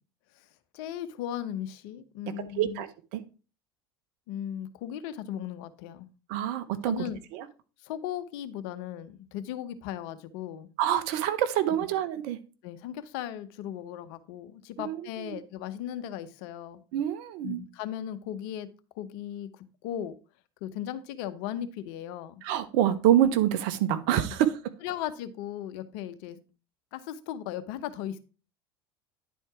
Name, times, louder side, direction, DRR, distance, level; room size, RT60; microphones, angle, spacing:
voice 1, 0.7-2.8 4.3-6.1 6.8-7.2 7.8-10.7 11.8-11.9 12.6-16.8 17.4-18.7 18.9-20.1 20.6-22.4 24.8-26.4 26.9-28.2, left 11 dB, 65° left, 11 dB, 1.0 m, -37 dB
voice 2, 2.4-3.2 6.3-7.0 7.3-7.5 10.8-12.4 14.8-15.4 16.9-17.6 22.4-24.6, right 11 dB, 65° right, 12 dB, 1.0 m, -26 dB
10.5 x 4.5 x 4.7 m, 0.34 s
hypercardioid pair, 80°, 12 cm